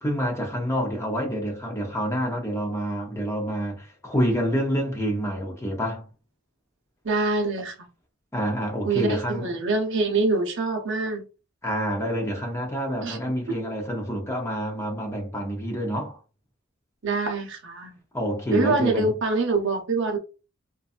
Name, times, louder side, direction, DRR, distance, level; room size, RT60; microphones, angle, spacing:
voice 1, 0.0-6.1 8.3-9.5 11.6-16.2 18.1-19.1, equal, 15° left, 0.7 m, -27 dB
voice 2, 7.0-7.9 8.8-11.2 13.0-13.2 17.0-18.0 18.5-20.2, right 3 dB, 60° right, 0.7 m, -25 dB
2.6 x 2.3 x 2.4 m
head